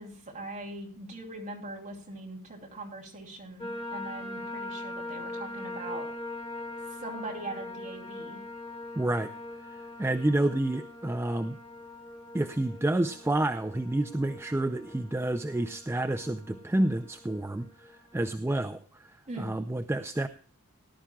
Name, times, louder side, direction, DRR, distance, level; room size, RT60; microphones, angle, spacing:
voice 1, 0.0-6.1 7.0-8.4 19.3-19.5, right 2 dB, 35° right, -1 dB, 3.0 m, -41 dB
sound 1, 3.6-18.3, left 2 dB, 30° left, 2.3 m, -42 dB
voice 2, 9.0-9.3 9.7-11.6 12.3-20.3, right 1 dB, 10° right, 9 dB, 0.4 m, -29 dB
19.0 x 11.5 x 2.3 m, 0.42 s
head